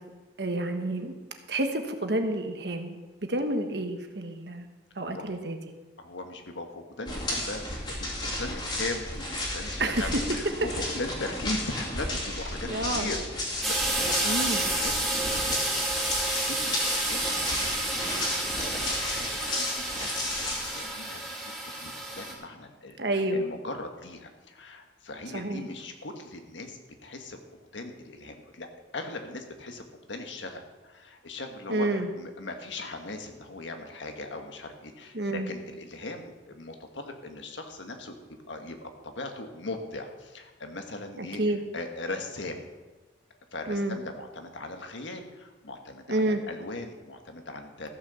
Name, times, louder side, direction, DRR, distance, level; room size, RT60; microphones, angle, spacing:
voice 1, 0.4-1.1 1.5-3.0 3.3-4.6 5.0-5.6 9.8-10.1 12.7-13.1 14.2-14.6 23.0-23.4 25.3-25.6 31.7-32.1 35.1-35.5 41.2-41.6 43.7-44.0 46.1-46.4, right 1 dB, 65° right, 6 dB, 1.3 m, -29 dB
voice 2, 6.0-27.4 27.7-28.7 28.9-42.7 43.5-47.9, left 2 dB, 85° left, 5 dB, 1.6 m, -39 dB
sound 1, 7.1-20.9, left 1 dB, 25° left, 2.6 m, -33 dB
sound 2, 13.6-22.3, right 1 dB, ahead, 2.5 m, -30 dB
14.5 x 6.5 x 7.1 m, 1.2 s
head